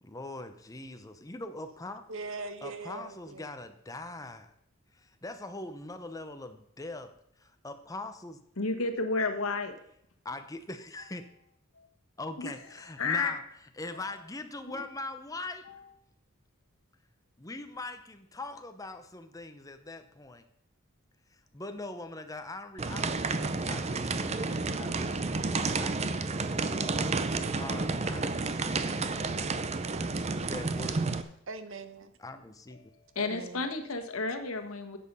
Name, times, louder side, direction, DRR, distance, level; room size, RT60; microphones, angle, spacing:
voice 1, 0.0-2.1 2.6-4.5 4.9-7.1 7.4-8.4 10.2-11.2 12.2-13.4 13.8-15.7 17.4-20.4 21.3-29.3 30.4-31.1 32.2-32.8, left 2 dB, 15° left, 8 dB, 0.8 m, -42 dB
voice 2, 2.1-3.4 31.5-32.1 33.2-33.7, right 3 dB, 65° right, 10 dB, 1.0 m, -41 dB
voice 3, 8.6-9.7 11.8-11.9 12.4-12.5 13.0-13.3 14.7-14.8 15.7-15.8 33.1-35.0, left 3 dB, 85° left, 6 dB, 1.3 m, -31 dB
sound 1, 22.8-31.2, right 3 dB, 30° right, 0.6 m, -31 dB
10.5 x 7.6 x 5.4 m, 0.74 s
head